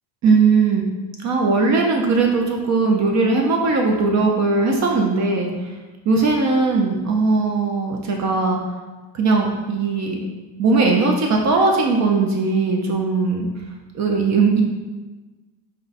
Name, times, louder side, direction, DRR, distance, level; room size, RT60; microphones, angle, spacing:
voice 1, 0.2-0.9 1.2-5.5 6.1-8.6 9.1-10.2 10.6-13.5 13.9-14.6, right 4 dB, 40° right, 1 dB, 0.5 m, -19 dB
4.1 x 2.2 x 4.0 m, 1.2 s
cardioid pair, 115°, 46 cm